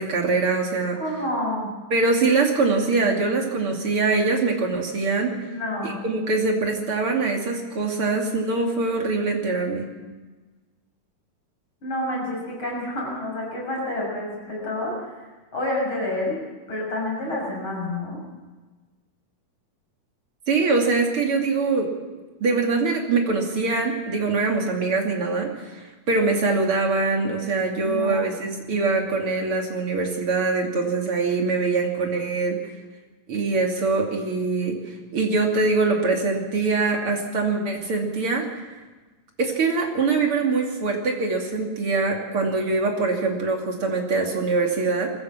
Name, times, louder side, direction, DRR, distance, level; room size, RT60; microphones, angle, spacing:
voice 1, 0.0-1.0 1.9-5.3 5.8-9.9 20.5-21.9 22.4-32.6 33.3-38.5 39.4-45.1, right 3 dB, 40° right, 1 dB, 3.0 m, -23 dB
voice 2, 1.0-1.7 5.4-6.0 11.8-15.2 15.5-16.4 16.7-18.2 27.8-28.2, left 1 dB, 30° left, -2 dB, 7.3 m, -28 dB
22.5 x 15.5 x 7.5 m, 1.3 s
omnidirectional pair, 4.4 m